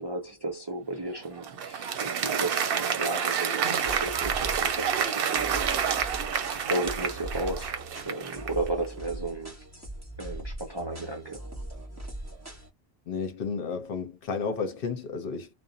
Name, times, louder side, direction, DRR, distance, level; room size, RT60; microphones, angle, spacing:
voice 1, 0.0-7.7 8.0-9.6 10.2-11.4, right 2 dB, 35° right, 0.4 m, -34 dB
Applause, 1.1-8.7, right 7 dB, 70° right, 0.7 m, -29 dB
sound 1, 3.7-12.7, right 1 dB, 15° right, 0.9 m, -40 dB
voice 2, 13.1-15.5, left 5 dB, 65° left, 0.8 m, -32 dB
2.5 x 2.0 x 2.5 m
omnidirectional pair, 1.1 m